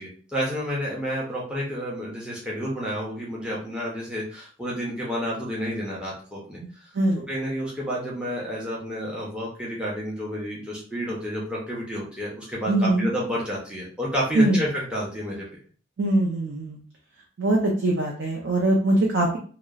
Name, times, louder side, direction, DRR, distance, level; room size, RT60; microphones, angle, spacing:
voice 1, 0.0-6.6 7.3-15.4, equal, 5° right, -5 dB, 0.5 m, -30 dB
voice 2, 12.7-13.1 14.3-14.6 16.0-16.8 17.4-19.4, right 1 dB, 70° right, -2 dB, 0.5 m, -22 dB
2.8 x 2.0 x 2.3 m, 0.44 s
head